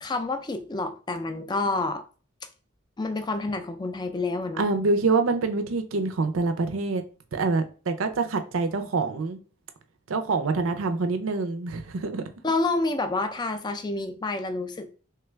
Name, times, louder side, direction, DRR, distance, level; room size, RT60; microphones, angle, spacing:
voice 1, 0.0-2.0 3.0-4.7 12.4-14.9, left 3 dB, 20° left, 0.4 m, -28 dB
voice 2, 4.6-7.0 7.3-9.4 10.1-12.2, right 3 dB, 80° right, 0.5 m, -26 dB
3.2 x 2.3 x 3.2 m
head